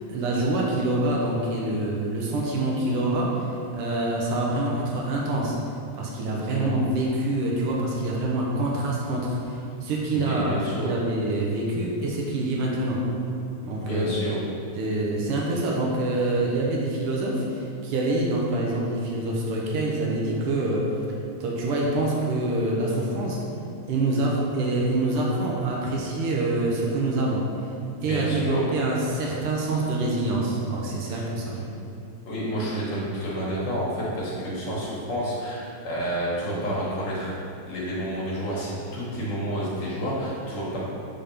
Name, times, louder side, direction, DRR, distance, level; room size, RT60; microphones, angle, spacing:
voice 1, 0.1-5.6 5.9-10.6 10.8-13.0 13.6-14.1 14.8-20.9 21.4-23.4 23.9-27.5 28.0-31.6, right 2 dB, 80° right, -3 dB, 1.3 m, -26 dB
voice 2, 10.1-10.9 13.8-14.4 28.0-28.7 31.1-31.2 31.5-31.7 32.2-40.8, right 1 dB, 50° left, -6 dB, 1.4 m, -29 dB
5.2 x 3.5 x 5.7 m, 2.5 s
omnidirectional pair, 3.4 m